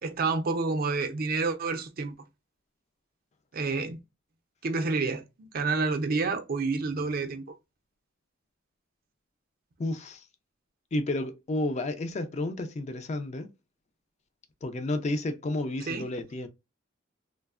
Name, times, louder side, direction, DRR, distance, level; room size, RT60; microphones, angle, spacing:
voice 1, 0.0-2.1 3.5-4.0 4.6-7.4 15.9-16.1, right 4 dB, 50° right, 0.5 m, -29 dB
voice 2, 9.8-10.2 10.9-13.5 14.6-16.5, left 2 dB, 35° left, 0.4 m, -31 dB
3.2 x 2.0 x 2.3 m
head